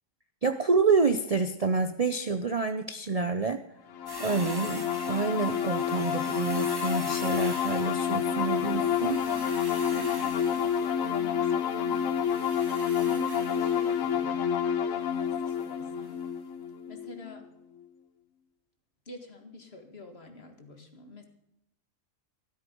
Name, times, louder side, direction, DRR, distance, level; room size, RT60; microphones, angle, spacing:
voice 1, 0.4-3.6 4.2-9.2, right 4 dB, 40° right, 8 dB, 0.5 m, -28 dB
sound 1, 3.9-17.4, left 8 dB, 80° left, 1.3 m, -29 dB
sound 2, 4.1-14.2 15.5-15.7 16.0-16.1, right 1 dB, 15° right, 1.8 m, -45 dB
voice 2, 9.9-14.3 14.9-16.2 16.9-17.5 19.1-21.2, left 1 dB, 50° left, 4 dB, 2.0 m, -46 dB
13.0 x 13.0 x 5.3 m, 0.81 s
omnidirectional pair, 1.4 m